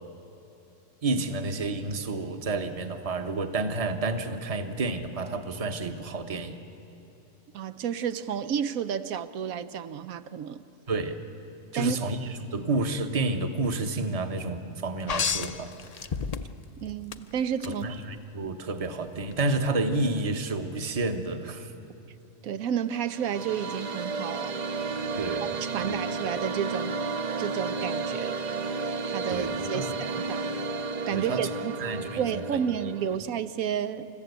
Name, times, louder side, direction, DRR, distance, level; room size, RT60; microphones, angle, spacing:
voice 1, 1.0-6.6 10.9-11.3 11.7-15.7 17.7-21.7 25.1-25.5 25.8-26.0 29.3-30.0 31.1-31.5 31.8-32.4, right 2 dB, 30° right, 7 dB, 1.0 m, -30 dB
voice 2, 7.5-10.6 11.7-12.1 16.8-17.9 22.4-24.6 25.6-27.0 27.4-28.4 29.1-30.4 31.1-31.8 32.2-34.1, right 8 dB, 85° right, 11 dB, 1.1 m, -31 dB
sound 1, 15.1-16.7 17.1-17.7 19.3-19.4, left 6 dB, 50° left, 0.4 m, -30 dB
sound 2, 22.9-33.2, right 4 dB, 45° right, 0.6 m, -32 dB
28.5 x 14.5 x 8.1 m, 2.8 s
omnidirectional pair, 1.4 m